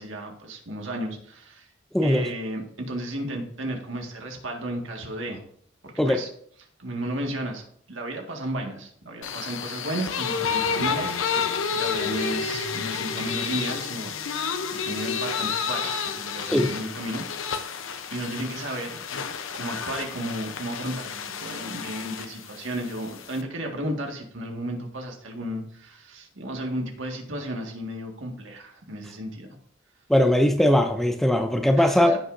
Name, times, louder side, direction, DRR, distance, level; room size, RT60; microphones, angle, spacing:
voice 1, 0.0-1.7 2.0-5.4 5.8-6.3 6.8-17.2 18.1-19.0 19.5-29.5 31.8-32.2, right 1 dB, 75° right, 1.7 m, -33 dB
voice 2, 1.9-2.3 6.0-6.2 16.5-16.7 30.1-32.2, left 1 dB, ahead, 0.4 m, -20 dB
sound 1, 9.2-23.4, left 6 dB, 80° left, 0.7 m, -30 dB
15.5 x 5.6 x 2.6 m
head